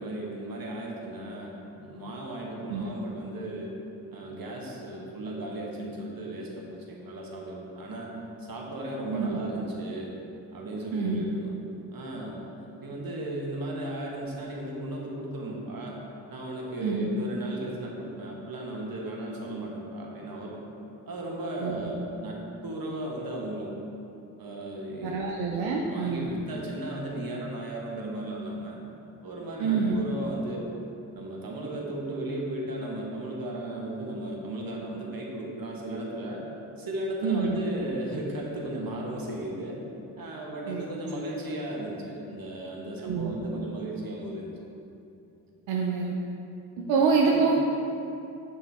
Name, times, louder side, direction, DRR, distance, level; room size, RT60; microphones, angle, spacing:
voice 1, 0.0-1.5 1.8-3.7 4.1-8.1 8.4-10.1 10.5-11.5 11.9-12.4 12.8-15.9 16.3-20.6 21.1-23.7 24.4-28.8 29.2-30.8 31.1-36.4 36.8-39.8 40.2-44.5 47.2-47.5, right 1 dB, 50° right, -2 dB, 1.5 m, -35 dB
voice 2, 10.9-11.2 16.8-17.1 21.6-21.9 25.0-26.3 29.6-30.0 37.2-37.6 40.7-40.8 43.0-43.4 45.7-46.2 46.9-47.6, right 5 dB, 85° right, -1 dB, 0.6 m, -26 dB
7.1 x 5.5 x 3.5 m, 2.7 s
hypercardioid pair, 40°, 44 cm